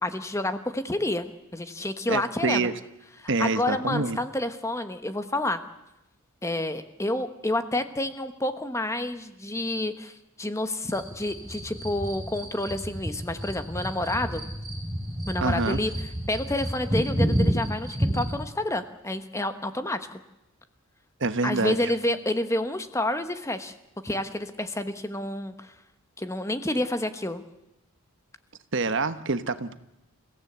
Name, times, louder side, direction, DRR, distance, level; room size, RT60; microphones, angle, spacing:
voice 1, 0.0-1.3 1.5-2.7 3.2-5.6 6.4-14.4 15.3-15.9 16.3-20.1 21.4-23.7 24.0-25.7 26.2-27.4, left 1 dB, 15° left, 9 dB, 1.2 m, -29 dB
voice 2, 2.1-2.7 3.3-4.2 15.4-15.8 21.2-21.8 28.7-29.7, right 3 dB, 60° right, 11 dB, 1.2 m, -26 dB
sound 1, 10.9-18.4, equal, 15° right, 6.1 m, -30 dB
29.0 x 16.5 x 8.1 m, 0.91 s
head